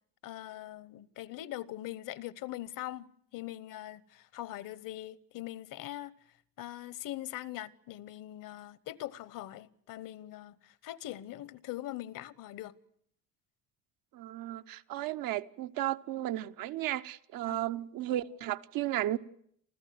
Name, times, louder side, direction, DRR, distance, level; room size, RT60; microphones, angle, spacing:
voice 1, 0.2-12.7 17.5-17.6, left 14 dB, 75° left, 1.1 m, -42 dB
voice 2, 14.1-19.2, right 14 dB, 85° right, 1.0 m, -34 dB
28.5 x 14.5 x 9.5 m
cardioid pair, 140°, 33 cm